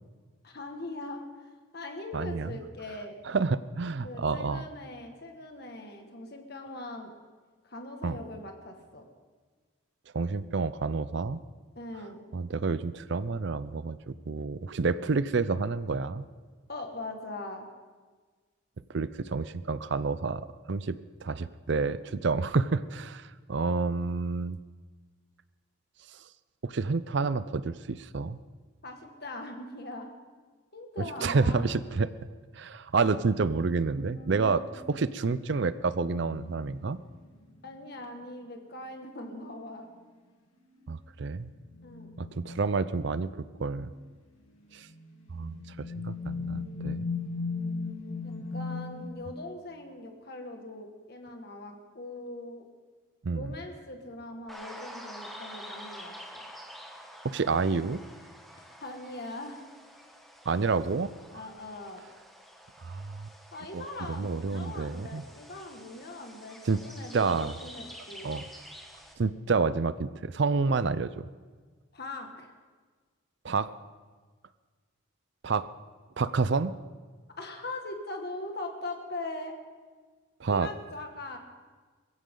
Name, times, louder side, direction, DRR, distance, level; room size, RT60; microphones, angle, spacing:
voice 1, 0.4-3.2 4.0-7.1 7.6-9.1 11.8-12.2 16.7-17.7 28.8-30.1 30.7-31.6 37.6-39.9 41.8-42.1 48.2-52.7 53.3-56.4 58.5-59.6 61.3-62.0 63.5-68.3 71.9-72.5 77.4-79.6 80.5-81.4, left 2 dB, 50° left, 3 dB, 1.9 m, -41 dB
voice 2, 2.1-2.5 3.2-4.6 8.0-8.2 10.1-11.4 12.3-16.2 18.9-24.6 26.6-28.4 31.2-32.1 32.5-37.0 40.9-41.5 42.2-43.9 44.7-44.9 45.3-45.6 46.0-47.1 53.2-53.5 57.2-58.0 60.5-61.1 62.8-63.3 63.7-63.8 64.1-65.2 66.7-66.8 67.1-67.5 68.2-68.4 69.2-71.3 73.4-73.7 75.4-75.7 76.2-76.7 80.4-80.7, right 4 dB, 55° right, 15 dB, 0.5 m, -29 dB
sound 1, 33.8-37.6 40.0-40.1 40.8-40.9 41.6-42.7 43.6-44.0 44.7-49.1, left 4 dB, 80° left, 3.0 m, -38 dB
sound 2, 54.5-69.1, equal, ahead, 1.5 m, -48 dB
21.5 x 15.5 x 3.9 m, 1.5 s
head